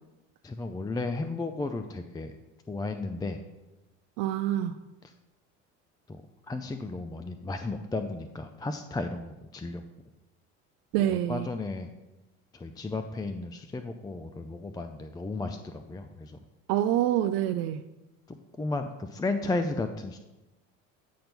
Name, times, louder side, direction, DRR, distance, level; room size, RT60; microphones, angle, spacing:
voice 1, 0.4-2.4 2.7-3.4 5.0-5.1 6.1-9.8 11.0-11.9 12.5-16.4 18.3-20.2, left 3 dB, 10° left, 7 dB, 0.5 m, -34 dB
voice 2, 4.2-4.8 10.9-11.5 16.7-17.8, right 12 dB, 60° right, 8 dB, 0.5 m, -26 dB
9.3 x 4.4 x 5.3 m, 1.0 s
hypercardioid pair, 75°, 39 cm